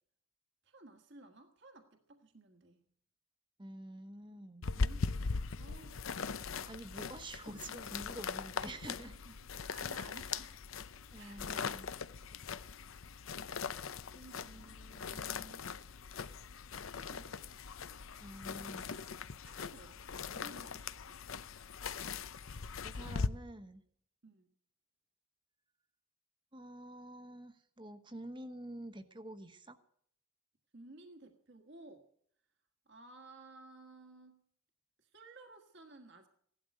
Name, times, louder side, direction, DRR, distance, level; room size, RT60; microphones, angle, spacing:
voice 1, 0.6-2.9 4.6-6.0 9.0-10.6 11.2-11.4 14.1-14.7 16.9-17.6 19.4-21.2 24.2-24.5 30.7-32.1 32.8-34.4 35.0-36.3, right 2 dB, 55° right, 4 dB, 1.5 m, -56 dB
voice 2, 3.6-4.7 6.7-9.1 11.1-11.9 14.4-15.6 18.2-19.0 22.8-23.8 26.5-29.8, right 1 dB, 20° right, 9 dB, 1.1 m, -48 dB
sound 1, 4.6-23.3, left 5 dB, 70° left, 0.7 m, -40 dB
16.5 x 12.0 x 6.5 m, 0.65 s
head